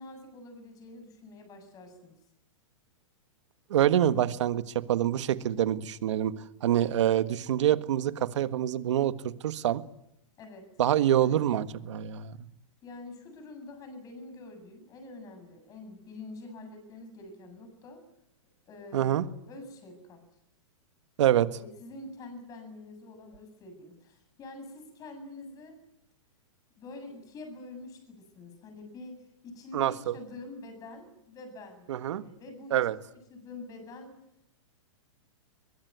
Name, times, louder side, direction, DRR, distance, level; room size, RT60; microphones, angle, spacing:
voice 1, 0.0-2.2 10.4-10.7 11.2-11.4 12.8-18.0 18.7-20.2 21.6-25.8 26.8-34.1, left 2 dB, 20° left, 7 dB, 7.7 m, -46 dB
voice 2, 3.7-4.6 4.9-9.1 9.4-9.8 10.8-12.5 18.9-19.2 21.2-21.5 29.7-30.1 31.9-32.2 32.7-33.0, right 11 dB, 65° right, 11 dB, 1.7 m, -26 dB
22.5 x 22.0 x 9.6 m, 0.80 s
hypercardioid pair, 155°, 17 cm